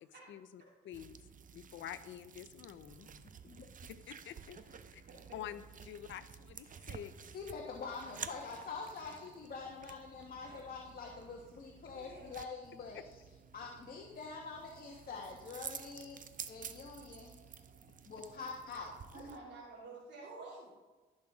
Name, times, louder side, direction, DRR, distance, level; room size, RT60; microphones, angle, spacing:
voice 1, 0.3-1.2 1.5-3.1 3.9-4.6 4.9-5.0 5.3-7.1 12.9-13.0, left 11 dB, 70° left, 13 dB, 0.7 m, -47 dB
sound 1, 0.9-19.4, right 7 dB, 40° right, 0.7 m, -52 dB
voice 2, 5.0-5.4 10.4-10.6 11.9-12.3 15.1-15.2 16.5-16.9 17.4-17.9 19.1-20.7, right 3 dB, 60° right, -6 dB, 2.9 m, -52 dB
voice 3, 7.3-13.2 13.5-17.3 18.0-18.9, left 4 dB, 50° left, 0 dB, 1.4 m, -45 dB
15.0 x 6.3 x 3.7 m, 1.3 s
cardioid pair, 90°, 20 cm